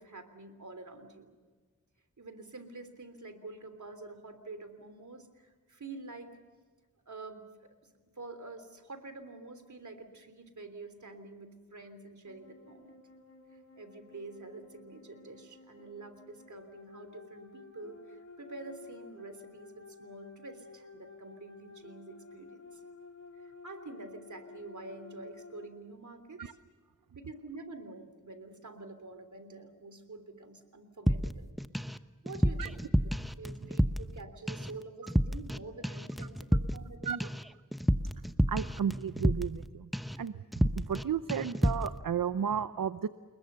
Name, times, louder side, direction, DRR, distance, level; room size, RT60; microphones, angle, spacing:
voice 1, 0.0-1.3 2.2-6.4 7.1-7.5 7.8-13.0 13.8-22.8 23.3-26.4 27.1-31.5 32.2-32.8 33.4-37.3, right 3 dB, 60° right, 9 dB, 3.4 m, -47 dB
sound 1, 12.2-25.7, left 3 dB, 55° left, 4.1 m, -52 dB
sound 2, 31.1-32.0 32.3-34.2 34.5-34.8 35.1-35.6 35.8-39.7 39.9-40.2 40.5-41.0 41.3-41.9, equal, ahead, 1.0 m, -30 dB
voice 2, 38.5-39.9 40.2-43.1, right 8 dB, 80° right, 13 dB, 0.8 m, -33 dB
29.0 x 21.5 x 6.9 m, 1.5 s
wide cardioid pair, 60°, 33 cm